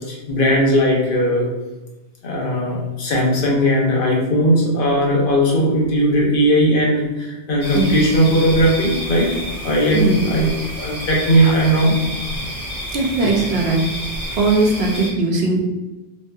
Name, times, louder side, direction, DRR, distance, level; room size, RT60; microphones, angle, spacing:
voice 1, 0.1-1.5 2.2-9.3 9.6-10.5 10.8-12.0, equal, 60° left, -3 dB, 0.9 m, -17 dB
sound 1, 7.6-15.1, equal, 30° left, 1.0 m, -29 dB
voice 2, 9.9-10.2 12.9-13.8 14.3-15.6, right 3 dB, 80° right, 1 dB, 0.8 m, -19 dB
3.0 x 2.6 x 2.2 m, 1.1 s
omnidirectional pair, 1.0 m